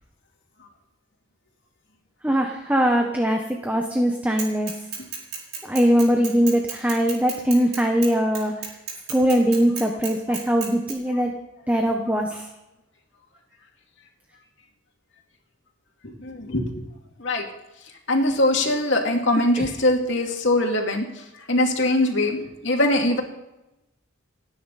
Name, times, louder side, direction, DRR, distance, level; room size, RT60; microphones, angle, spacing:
voice 1, 2.2-4.7 5.6-8.5 9.1-11.3 11.7-12.5 19.6-19.7, equal, 10° right, 2 dB, 1.2 m, -21 dB
Bicycle / Mechanisms, 4.4-10.9, right 6 dB, 50° right, 4.7 m, -33 dB
voice 2, 16.0-16.8 17.2-17.4 18.1-23.2, left 1 dB, 65° left, 1 dB, 2.7 m, -22 dB
30.0 x 10.0 x 4.2 m, 0.97 s
head